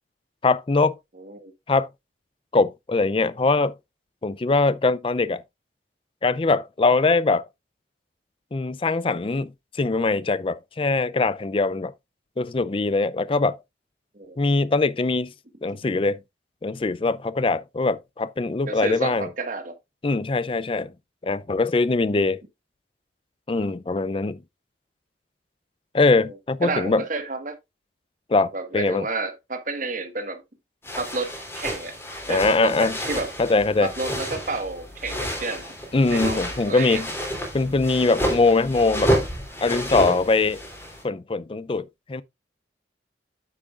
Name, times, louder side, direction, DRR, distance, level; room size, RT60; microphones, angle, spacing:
voice 1, 0.4-0.9 1.7-1.9 2.5-3.7 4.2-5.4 6.2-7.5 8.5-11.9 12.4-13.6 14.4-15.3 15.6-16.2 16.6-19.3 20.0-20.9 21.2-22.4 23.5-24.4 25.9-27.0 28.3-29.1 32.3-32.9 33.4-33.9 35.9-37.1 37.5-39.1 39.6-40.6 41.0-42.2, left 3 dB, 30° left, 0.4 m, -22 dB
voice 2, 1.2-1.5 14.1-14.4 18.6-19.7 26.2-26.3 26.6-27.6 28.5-30.4 31.0-32.0 32.3-33.3 33.8-35.7 36.1-37.0, right 3 dB, 45° right, 1.5 m, -30 dB
sound 1, 30.8-41.0, equal, 15° left, 3.0 m, -30 dB
8.8 x 8.6 x 2.4 m
head